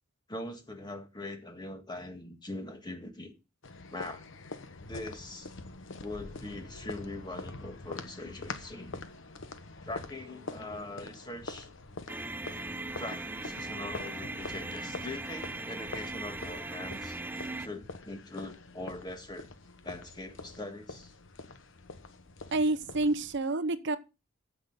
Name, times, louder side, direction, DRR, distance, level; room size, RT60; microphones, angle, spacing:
voice 1, 0.3-3.3 3.9-4.3 4.9-5.5 6.0-9.0 9.8-11.7 13.0-17.2 17.6-19.5 19.8-21.1, left 2 dB, 20° left, 1.7 m, -42 dB
sound 1, 3.6-23.4, left 3 dB, 65° left, 1.1 m, -45 dB
sound 2, 12.1-17.7, right 2 dB, 10° right, 0.5 m, -39 dB
voice 2, 22.5-24.0, right 2 dB, 60° right, 0.8 m, -28 dB
15.0 x 6.2 x 3.9 m
head